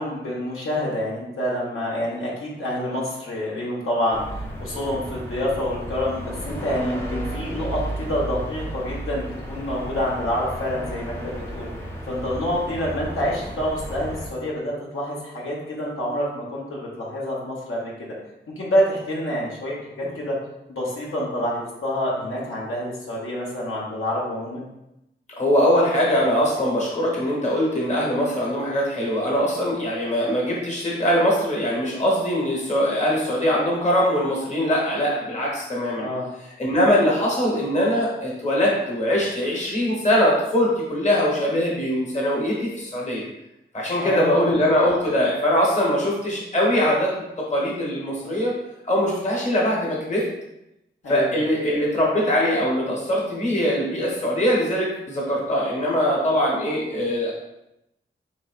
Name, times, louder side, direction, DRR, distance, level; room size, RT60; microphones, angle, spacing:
voice 1, 0.0-4.2 4.6-11.7 12.1-17.9 18.6-20.3 20.7-24.7 36.0-36.3 44.0-44.5 51.0-51.4, equal, 90° left, -5 dB, 1.0 m, -27 dB
sound 1, 4.1-14.3, right 1 dB, 10° left, 0.6 m, -33 dB
voice 2, 25.4-36.1 36.6-43.2 43.7-48.5 48.9-50.3 51.1-57.3, equal, 35° left, -4 dB, 1.1 m, -22 dB
4.1 x 3.1 x 2.4 m, 0.87 s
wide cardioid pair, 130°, 21 cm